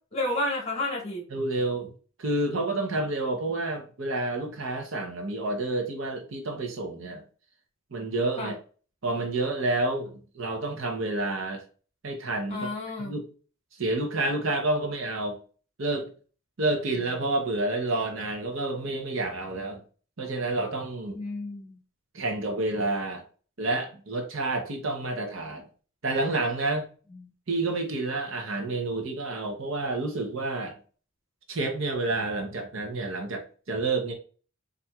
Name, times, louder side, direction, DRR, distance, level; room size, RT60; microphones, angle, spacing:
voice 1, 0.1-1.2 8.4-8.5 12.5-13.1 21.1-21.8 27.1-27.2, left 1 dB, 30° left, -2 dB, 1.3 m, -31 dB
voice 2, 1.3-1.9 2.2-7.2 7.9-8.5 9.0-11.6 12.0-12.7 13.0-13.2 13.8-15.4 15.8-16.1 16.6-19.8 20.2-21.2 22.1-23.2 23.6-25.7 26.0-26.9 27.5-30.8 31.5-34.1, right 2 dB, 65° right, 3 dB, 0.8 m, -29 dB
4.3 x 2.6 x 2.3 m, 0.39 s
head